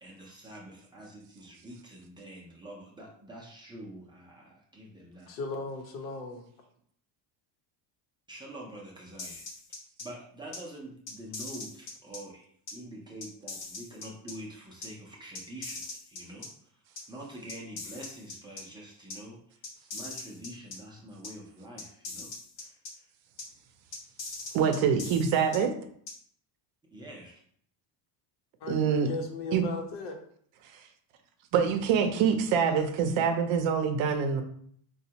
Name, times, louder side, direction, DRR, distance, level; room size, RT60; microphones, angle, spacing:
voice 1, 0.0-5.3 8.3-9.4 10.0-16.8 17.1-22.3 22.6-23.1 26.9-27.4, right 1 dB, 10° right, -4 dB, 0.4 m, -46 dB
voice 2, 5.3-6.4 28.6-30.2, left 2 dB, 85° left, 3 dB, 0.9 m, -36 dB
sound 1, 9.2-10.0 10.5-10.6 11.1-12.2 12.7-12.8 13.2-14.3 14.8-14.9 15.3-16.5 17.0-17.1 17.5-18.6 19.1-19.2 19.6-20.8 21.2-21.3 21.8-22.9 23.4-23.5 23.9-25.6 26.1-26.2, left 3 dB, 50° left, 0.9 m, -41 dB
voice 3, 24.5-25.7 28.7-29.1 29.5-29.6 31.5-34.4, right 7 dB, 65° right, 7 dB, 0.6 m, -25 dB
4.1 x 2.3 x 2.8 m, 0.62 s
cardioid pair, 155°, 49 cm